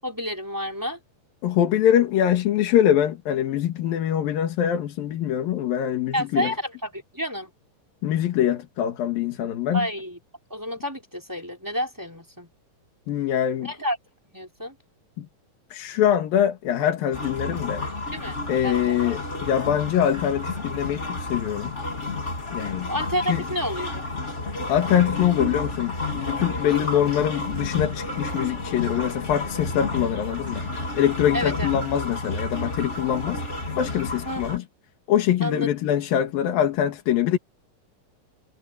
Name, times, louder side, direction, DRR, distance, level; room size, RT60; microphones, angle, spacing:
voice 1, 0.0-1.0 6.1-7.5 9.7-10.2 10.5-12.5 13.6-14.0 14.3-14.7 18.1-19.0 22.9-24.0 26.7-27.0 31.3-31.7 34.2-34.4 35.4-35.7, equal, 5° right, 3.9 m, -30 dB
voice 2, 1.4-6.5 8.0-9.9 13.1-13.7 15.2-15.3 15.7-17.8 18.5-21.7 22.5-22.9 23.3-23.4 24.7-33.4 33.8-34.6 35.1-37.4, left 10 dB, 85° left, 3.5 m, -23 dB
sound 1, 17.1-34.6, left 2 dB, 20° left, 2.5 m, -31 dB
omnidirectional pair, 4.0 m